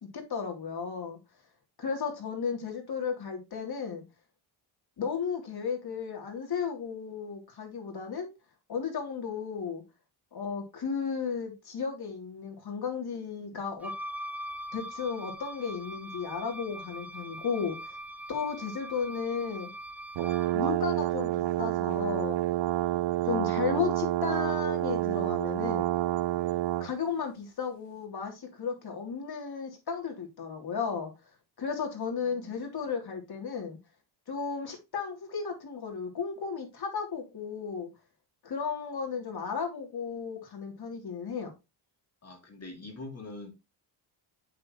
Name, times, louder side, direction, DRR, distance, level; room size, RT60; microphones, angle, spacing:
voice 1, 0.0-1.2 1.8-4.0 5.0-8.3 8.7-9.8 10.3-13.9 14.7-18.0 18.3-19.7 20.5-22.4 23.2-25.9 26.8-31.1 31.6-33.8 34.3-37.9 38.4-41.5, left 6 dB, 50° left, 3.3 m, -34 dB
Wind instrument woodwind instrument, 13.8-20.6, equal, 5° right, 0.5 m, -42 dB
sound 1, 20.2-26.9, right 15 dB, 60° right, 0.7 m, -28 dB
voice 2, 42.2-43.5, left 2 dB, 30° left, 2.7 m, -43 dB
7.6 x 6.7 x 3.1 m
cardioid pair, 85°, 50 cm